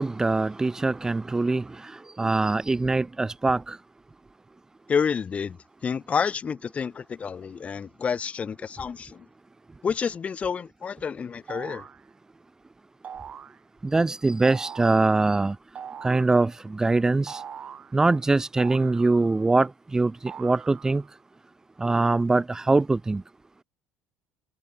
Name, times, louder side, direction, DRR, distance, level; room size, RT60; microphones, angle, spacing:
voice 1, 0.0-1.6 2.2-3.8 13.9-15.5 16.0-17.4 17.9-20.1 20.4-21.0 21.8-23.2, right 3 dB, 15° right, 2.2 m, -23 dB
voice 2, 4.9-5.6 5.8-9.3 9.8-11.9, left 6 dB, 30° left, 5.2 m, -29 dB
sound 1, 11.5-12.0 13.0-13.6 14.4-15.0 15.7-16.4 17.3-17.9 18.6-19.5 20.3-21.1, right 8 dB, 35° right, 2.6 m, -41 dB
supercardioid pair, 105°, 4 cm